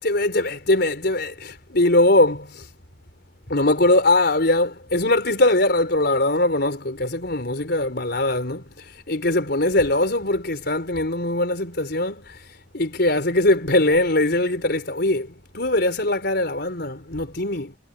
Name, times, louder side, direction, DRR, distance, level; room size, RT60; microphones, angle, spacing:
voice 1, 0.0-2.7 3.5-8.6 9.1-12.4 12.7-17.7, left 2 dB, 60° left, 4.6 m, -21 dB
head